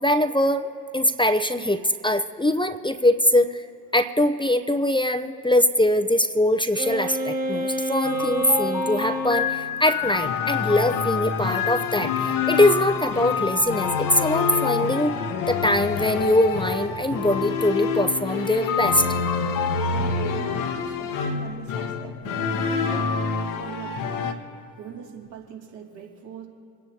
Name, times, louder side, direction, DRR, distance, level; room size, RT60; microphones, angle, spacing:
voice 1, 0.0-0.7 0.9-3.6 3.9-15.2 15.5-19.1, left 1 dB, 10° left, 9 dB, 0.7 m, -22 dB
Wind instrument woodwind instrument, 6.7-9.6, right 1 dB, 20° right, 2.0 m, -28 dB
sound 1, 8.0-20.1, left 9 dB, 40° left, 1.1 m, -31 dB
sound 2, 10.0-24.3, left 5 dB, 65° left, 1.3 m, -27 dB
voice 2, 19.9-23.1 23.6-24.4 24.8-26.5, right 6 dB, 60° right, -1 dB, 2.8 m, -40 dB
28.0 x 9.8 x 2.9 m, 2.6 s
figure-of-eight pair, 45°, 50 cm